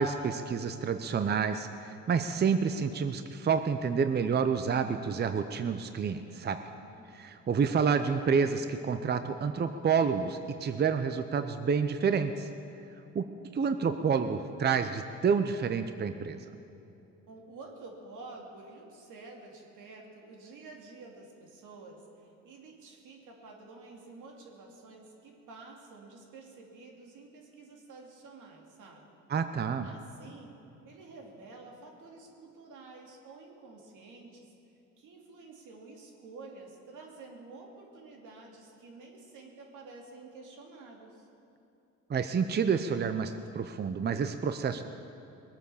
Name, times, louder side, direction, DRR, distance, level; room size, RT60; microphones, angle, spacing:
voice 1, 0.0-6.6 7.1-12.5 13.1-13.2 13.5-16.4 29.3-29.9 42.1-44.8, right 6 dB, 35° right, 9 dB, 0.7 m, -29 dB
voice 2, 6.7-7.1 17.3-29.1 29.8-30.6 30.8-34.5 35.0-41.3, right 3 dB, 80° right, 0 dB, 2.7 m, -50 dB
20.5 x 9.0 x 7.0 m, 2.8 s
cardioid pair, 90°, 30 cm